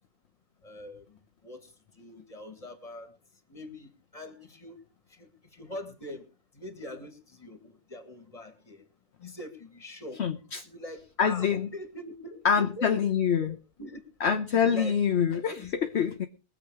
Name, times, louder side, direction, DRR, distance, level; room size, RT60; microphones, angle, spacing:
voice 1, 0.6-3.1 3.5-4.8 5.1-6.2 6.5-8.8 9.2-10.2 10.6-12.9 13.4-14.0 14.5-15.0 15.3-15.9, left 1 dB, 25° left, 8 dB, 2.1 m, -43 dB
voice 2, 10.2-10.7 11.2-11.7 12.4-13.5 14.2-16.3, left 7 dB, 60° left, 7 dB, 1.1 m, -25 dB
21.5 x 7.5 x 4.8 m, 0.33 s
omnidirectional pair, 1.3 m